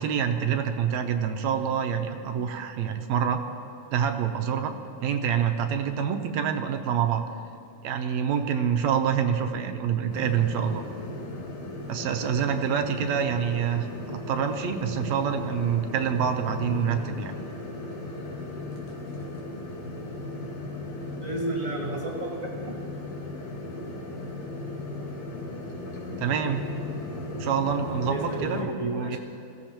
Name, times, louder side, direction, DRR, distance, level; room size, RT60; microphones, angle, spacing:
voice 1, 0.0-3.4 3.9-4.8 5.0-7.2 7.8-10.8 11.9-17.3 26.2-26.6 27.4-29.2, right 8 dB, 75° right, 5 dB, 1.9 m, -26 dB
sound 1, 10.1-28.6, left 2 dB, 75° left, 3.3 m, -36 dB
voice 2, 21.2-22.3 22.7-22.8 28.0-29.2, right 1 dB, 35° right, -2 dB, 1.8 m, -32 dB
23.0 x 16.0 x 3.0 m, 2.6 s
omnidirectional pair, 3.4 m